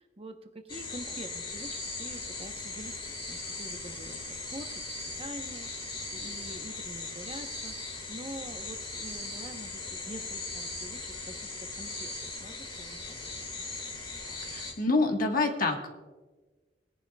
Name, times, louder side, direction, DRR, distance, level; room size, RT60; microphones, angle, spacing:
voice 1, 0.0-4.7 5.2-12.1 12.4-13.2 13.5-13.7, right 1 dB, 30° right, 6 dB, 0.9 m, -46 dB
sound 1, 0.7-14.7, left 3 dB, 25° left, 2.1 m, -39 dB
voice 2, 14.4-15.9, left 3 dB, 50° left, 3 dB, 1.4 m, -27 dB
20.5 x 10.5 x 2.3 m, 1.3 s
head